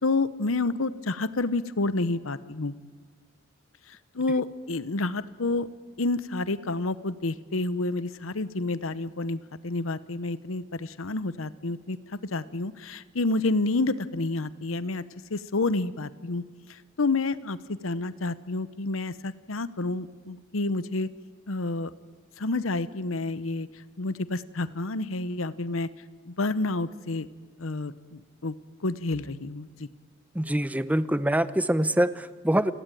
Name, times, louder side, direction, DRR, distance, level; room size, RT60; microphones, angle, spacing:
voice 1, 0.0-2.7 3.9-5.7 6.0-15.0 15.3-16.4 16.7-21.1 21.5-21.9 22.4-23.7 24.0-25.9 26.3-27.3 27.6-28.5 28.8-29.9, left 2 dB, 90° left, 15 dB, 1.0 m, -29 dB
voice 2, 30.3-32.7, right 1 dB, 10° right, 14 dB, 0.7 m, -24 dB
29.0 x 17.5 x 9.2 m, 1.5 s
head